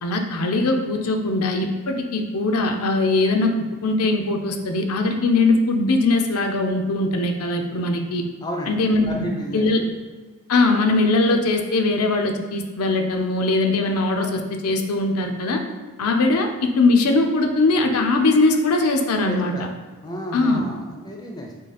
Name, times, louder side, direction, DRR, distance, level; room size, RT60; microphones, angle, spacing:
voice 1, 0.0-8.2 8.7-9.3 9.5-9.8 10.5-15.6 16.0-19.5 20.3-20.6, left 2 dB, 85° left, 4 dB, 0.5 m, -21 dB
voice 2, 8.4-8.8 9.1-9.7 19.3-19.7 20.0-21.6, equal, 20° left, 1 dB, 0.4 m, -32 dB
3.7 x 3.2 x 4.1 m, 1.3 s
head